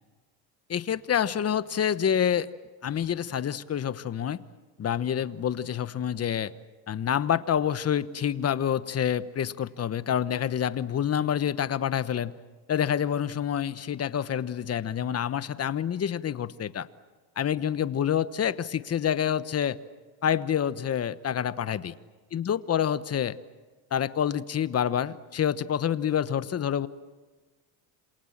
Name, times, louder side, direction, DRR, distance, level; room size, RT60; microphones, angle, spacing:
voice 1, 0.7-2.5 2.8-4.4 4.8-6.5 6.9-12.3 12.7-16.9 17.4-19.8 20.2-21.9 22.3-23.4 23.9-26.9, left 9 dB, 30° left, 14 dB, 1.1 m, -27 dB
27.5 x 27.0 x 7.4 m, 1.3 s
supercardioid pair, 100°, 48 cm